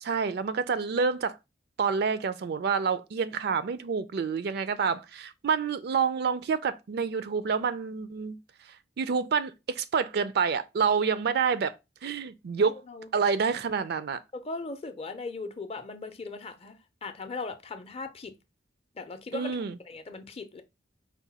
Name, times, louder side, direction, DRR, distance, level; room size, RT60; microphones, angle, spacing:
voice 1, 0.0-1.4 1.8-8.4 9.0-11.7 12.0-12.8 13.1-14.2 19.3-19.8, right 5 dB, 60° right, 0.4 m, -28 dB
voice 2, 14.3-18.3 19.0-20.6, left 3 dB, 35° left, 0.5 m, -38 dB
4.8 x 2.2 x 4.1 m
head